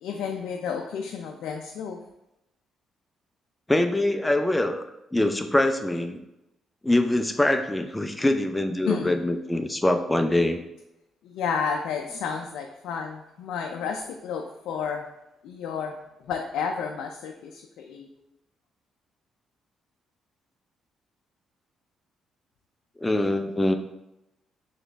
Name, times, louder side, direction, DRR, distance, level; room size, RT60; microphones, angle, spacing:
voice 1, 0.0-2.0 8.9-9.1 11.2-15.1 15.4-16.0 16.2-18.1, left 6 dB, 85° left, 2 dB, 0.3 m, -31 dB
voice 2, 3.7-4.8 5.1-6.2 6.8-10.6 23.0-23.7, left 1 dB, 10° left, 6 dB, 0.4 m, -23 dB
3.9 x 3.1 x 3.3 m, 0.89 s
cardioid pair, 90°, 0 cm